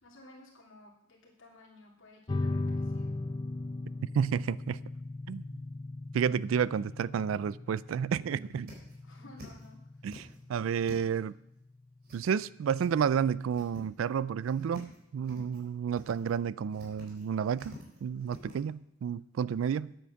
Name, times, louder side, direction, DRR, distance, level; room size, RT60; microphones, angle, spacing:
voice 1, 0.0-3.1 9.0-9.8, left 2 dB, 75° left, -3 dB, 2.5 m, -55 dB
sound 1, 2.3-13.3, left 2 dB, 20° left, 0.4 m, -39 dB
voice 2, 4.1-4.8 5.3-5.4 6.1-8.7 10.0-11.3 12.1-17.7 18.0-19.9, right 7 dB, 80° right, 20 dB, 0.3 m, -31 dB
sound 2, 6.9-7.0 7.4-7.5 7.8-7.9 8.2-9.7 10.0-11.3 12.0-12.5 12.8-12.9 13.3-14.1 14.4-15.0 15.2-15.7 15.9-16.3 16.7-18.6, left 1 dB, 55° right, 3.7 m, -50 dB
9.5 x 8.5 x 6.4 m, 0.77 s
head